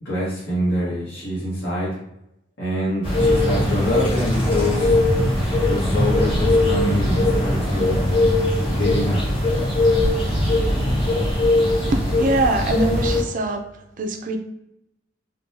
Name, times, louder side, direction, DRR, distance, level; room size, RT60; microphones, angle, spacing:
voice 1, 0.0-1.9 2.6-5.0 5.7-8.1 8.8-9.2, left 1 dB, 80° left, -10 dB, 1.2 m, -25 dB
sound 1, 3.0-13.2, left 1 dB, 30° left, 1.2 m, -20 dB
voice 2, 11.9-13.7 14.0-14.4, right 2 dB, 45° right, 5 dB, 0.4 m, -23 dB
3.7 x 2.3 x 2.7 m, 0.83 s
head